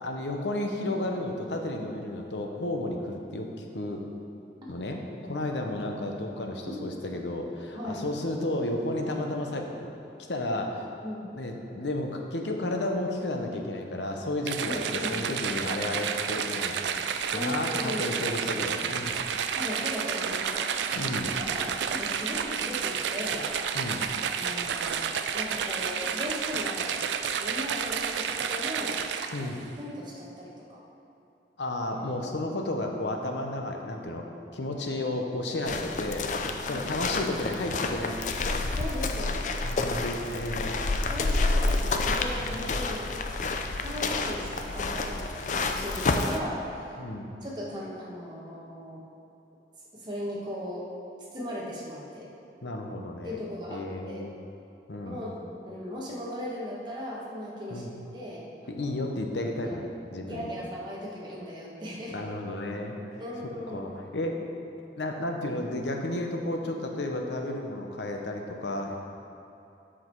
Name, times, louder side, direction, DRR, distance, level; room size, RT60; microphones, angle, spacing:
voice 1, 0.0-3.5 3.7-4.0 4.7-9.9 10.3-10.9 11.3-16.8 17.3-19.2 20.9-21.3 23.7-24.0 29.3-29.6 31.6-34.3 34.5-36.2 36.6-38.7 39.6-40.8 42.4-42.6 47.0-47.3 52.6-53.4 53.7-54.3 54.9-55.2 57.7-57.9 58.7-60.5 62.1-63.0 63.7-64.4 65.0-69.0, left 1 dB, 85° left, 2 dB, 0.9 m, -32 dB
sound 1, 14.5-29.6, right 7 dB, 90° right, 0.4 m, -31 dB
voice 2, 14.6-15.2 17.3-18.2 19.5-20.7 21.0-23.5 24.3-27.0 27.4-29.0 29.4-29.5 29.8-30.8 31.9-32.1 36.7-36.9 38.7-39.5 41.1-47.0 47.4-49.0 49.9-50.9 51.3-52.3 53.2-54.3 55.0-58.9 59.6-59.8 60.2-62.2 63.2-63.9, equal, 25° right, -5 dB, 1.4 m, -38 dB
sound 2, 35.7-46.4, left 3 dB, 45° left, 0.4 m, -29 dB
7.6 x 6.3 x 4.6 m, 2.8 s
head